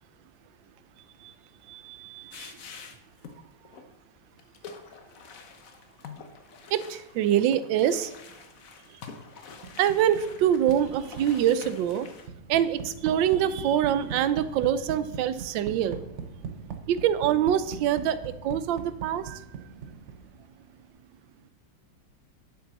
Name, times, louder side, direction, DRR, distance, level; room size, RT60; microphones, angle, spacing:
voice 1, 1.7-2.5 6.7-8.1 8.9-9.0 9.8-12.1 12.5-16.0 16.9-19.5, right 10 dB, 85° right, 14 dB, 1.3 m, -25 dB
sound 1, 2.3-3.4 3.6-3.8 4.4-12.3, left 5 dB, 55° left, 1.2 m, -47 dB
sound 2, 9.6-20.5, right 6 dB, 55° right, 0.9 m, -41 dB
10.5 x 7.2 x 4.0 m, 0.91 s
omnidirectional pair, 2.0 m